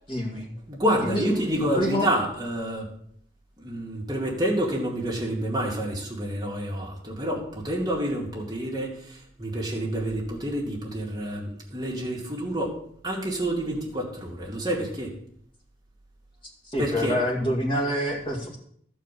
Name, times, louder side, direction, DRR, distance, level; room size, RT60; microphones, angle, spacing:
voice 1, 0.1-0.5 1.0-2.1 16.7-18.6, equal, 25° left, -1 dB, 2.0 m, -27 dB
voice 2, 0.7-2.9 3.6-12.7 13.0-15.1 16.8-17.2, right 1 dB, 20° right, -3 dB, 2.2 m, -28 dB
13.5 x 4.8 x 7.5 m, 0.65 s
head